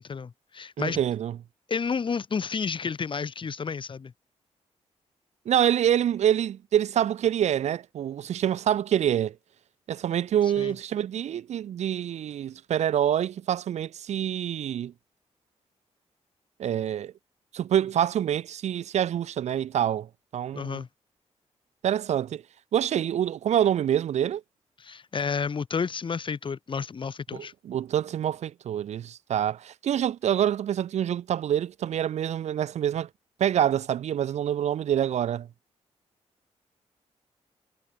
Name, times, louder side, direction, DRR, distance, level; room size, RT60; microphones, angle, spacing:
voice 1, 0.0-1.0 1.7-4.1 10.6-10.7 20.5-20.9 24.8-27.5, left 5 dB, 45° left, 2.8 m, -31 dB
voice 2, 0.8-1.4 5.5-9.3 9.9-14.9 16.6-17.1 17.5-20.8 21.8-22.4 22.7-24.4 27.3-33.1 33.4-35.5, right 10 dB, 75° right, 0.6 m, -26 dB
cardioid pair, 95°, 12 cm